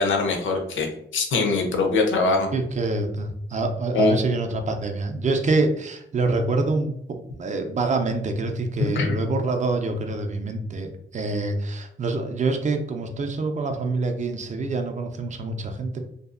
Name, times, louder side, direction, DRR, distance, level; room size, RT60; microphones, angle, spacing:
voice 1, 0.0-2.5 3.9-4.1 9.0-9.1, left 3 dB, 75° left, 2 dB, 0.6 m, -22 dB
voice 2, 2.5-16.0, right 3 dB, 40° right, 5 dB, 0.4 m, -26 dB
2.6 x 2.3 x 2.4 m, 0.73 s
wide cardioid pair, 110°, 20 cm